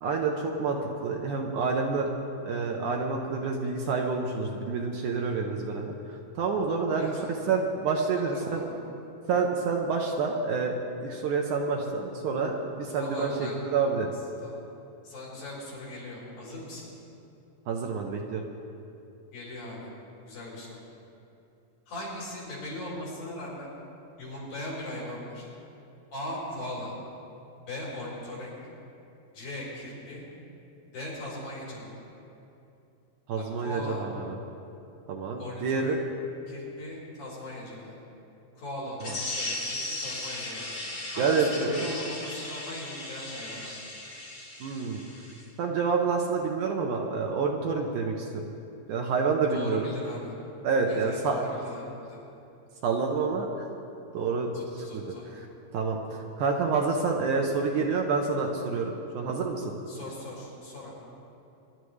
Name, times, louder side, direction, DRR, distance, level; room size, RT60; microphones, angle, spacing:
voice 1, 0.0-2.1 2.5-5.9 6.4-7.1 7.5-8.6 9.3-14.1 17.7-18.4 33.3-34.4 35.1-36.0 41.2-41.9 44.6-45.0 45.6-48.3 48.9-49.9 50.6-51.5 52.8-53.5 54.1-55.0 55.7-59.8, right 4 dB, 70° right, 1 dB, 2.1 m, -28 dB
voice 2, 7.0-7.4 8.3-8.8 12.9-13.6 14.4-14.5 15.0-16.9 19.3-19.9 20.3-20.8 21.9-23.7 24.2-25.5 26.1-26.9 27.7-28.6 29.3-30.2 30.9-32.0 33.3-34.0 35.4-36.0 36.5-38.0 38.6-40.7 41.1-43.8 49.5-50.3 50.9-52.2 54.5-55.3 59.9-60.9, left 1 dB, 75° left, -6 dB, 5.9 m, -39 dB
sound 1, 39.0-45.4, left 2 dB, 40° left, 5.0 m, -37 dB
23.0 x 11.5 x 3.3 m, 2.7 s
omnidirectional pair, 4.2 m